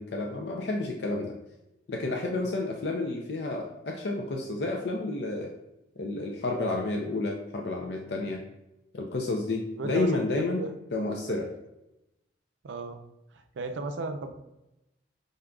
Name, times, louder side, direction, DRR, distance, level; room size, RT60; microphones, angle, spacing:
voice 1, 0.0-1.3 1.9-5.5 6.0-8.4 8.9-11.5, left 2 dB, 65° left, 1 dB, 0.5 m, -30 dB
voice 2, 2.1-2.4 8.0-8.3 9.8-10.7 11.0-11.4 12.6-13.0 13.3-14.3, right 3 dB, 90° right, 6 dB, 0.5 m, -36 dB
5.4 x 3.7 x 2.3 m, 0.91 s
head